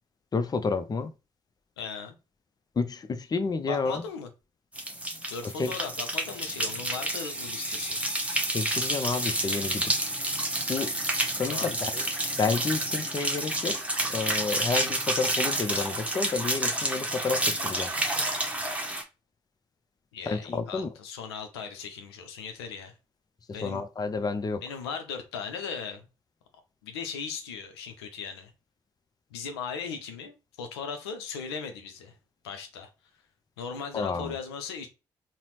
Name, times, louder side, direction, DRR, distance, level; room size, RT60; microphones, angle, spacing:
voice 1, 0.3-1.1 2.8-4.0 5.6-5.7 8.5-10.1 10.7-10.9 11.4-12.0 12.4-13.8 14.1-17.9 20.3-20.9 23.6-24.6 33.9-34.3, left 4 dB, 30° left, 0.5 m, -30 dB
voice 2, 1.8-2.2 3.7-4.3 5.3-8.0 11.4-11.7 20.1-22.9 23.5-23.8 24.6-26.1 26.8-28.5 29.3-32.2 32.4-32.9 33.6-34.9, left 6 dB, 85° left, 0.5 m, -38 dB
pouring water into the bath (both water taps), 4.7-19.0, right 1 dB, 10° right, 0.9 m, -29 dB
3.9 x 2.0 x 3.0 m
hypercardioid pair, 40°, 13 cm